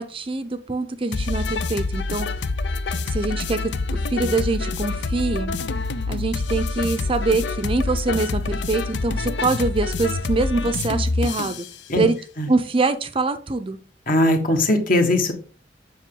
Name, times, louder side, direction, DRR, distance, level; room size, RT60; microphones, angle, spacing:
voice 1, 0.0-2.3 3.1-5.5 6.1-11.7 12.0-12.2 12.5-13.8, right 3 dB, 30° right, 0.5 m, -24 dB
sound 1, 1.1-11.7, left 3 dB, 75° left, 0.6 m, -26 dB
voice 2, 14.1-15.3, left 1 dB, 50° left, 1.4 m, -19 dB
7.4 x 5.8 x 3.8 m
head